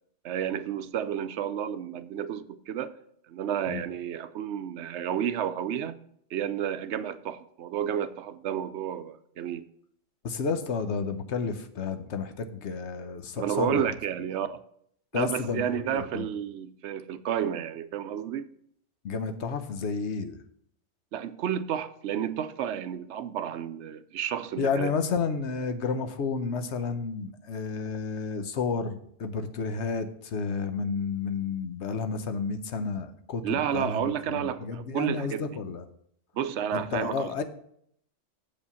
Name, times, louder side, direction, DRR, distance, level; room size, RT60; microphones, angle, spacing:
voice 1, 0.2-2.9 3.3-5.9 6.3-9.6 13.4-14.6 15.1-18.5 21.1-24.9 33.4-35.6 36.3-37.3, right 9 dB, 75° right, 13 dB, 0.9 m, -31 dB
voice 2, 10.2-13.9 15.1-16.3 19.0-20.4 24.6-35.8 36.7-37.4, left 5 dB, 70° left, 9 dB, 1.1 m, -31 dB
7.4 x 5.1 x 6.9 m, 0.68 s
omnidirectional pair, 1.2 m